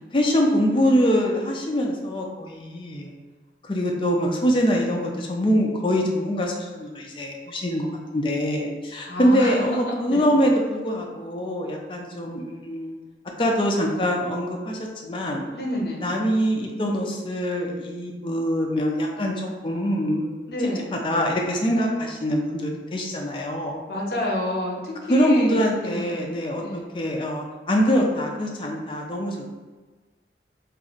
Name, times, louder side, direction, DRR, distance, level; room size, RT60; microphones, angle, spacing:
voice 1, 0.1-3.1 3.6-7.9 8.1-13.0 13.4-15.5 16.0-19.3 19.6-20.5 20.9-23.8 25.1-29.5, equal, 30° left, 0 dB, 0.4 m, -24 dB
voice 2, 9.1-10.3 15.5-16.1 20.5-21.0 23.9-26.3 26.6-26.9, left 1 dB, 60° left, -1 dB, 0.7 m, -29 dB
2.6 x 2.4 x 3.9 m, 1.3 s
head